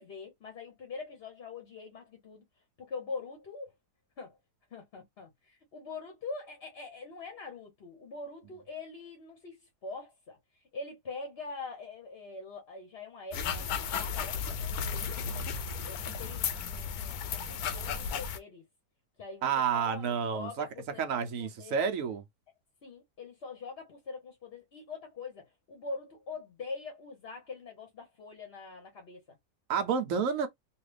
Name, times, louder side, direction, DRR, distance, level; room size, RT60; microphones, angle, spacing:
voice 1, 0.0-2.4 2.8-3.7 4.2-4.4 4.7-15.5 15.8-18.7 19.2-21.9 22.8-29.4, left 4 dB, 50° left, 0.9 m, -44 dB
sound 1, 13.3-18.4, left 6 dB, 75° left, 1.0 m, -34 dB
voice 2, 19.4-20.7 21.0-22.2 29.7-30.5, right 6 dB, 65° right, 1.0 m, -30 dB
3.2 x 2.4 x 3.2 m
omnidirectional pair, 1.7 m